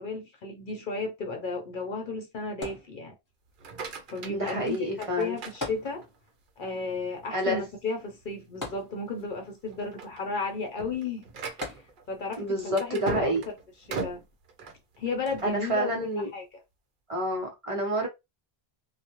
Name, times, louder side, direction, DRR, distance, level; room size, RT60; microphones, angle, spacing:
voice 1, 0.0-3.2 4.1-6.1 6.6-11.7 12.1-13.3 13.9-14.2 15.0-15.9 16.3-16.5, left 3 dB, 60° left, 0.7 m, -34 dB
sound 1, 2.6-3.5 5.6-6.5 6.8-6.9 8.6-9.4 11.6-12.3 13.0-13.1, left 2 dB, 20° left, 1.0 m, -39 dB
sound 2, 3.5-6.3 6.8-7.2 7.7-7.8 8.2-8.4 9.0-9.3 9.7-15.5, right 4 dB, 60° right, 0.7 m, -40 dB
voice 2, 4.3-5.4 7.3-7.6 12.4-13.4 15.4-16.3 17.1-18.1, right 1 dB, 35° right, 0.8 m, -28 dB
2.3 x 2.1 x 2.8 m
omnidirectional pair, 1.0 m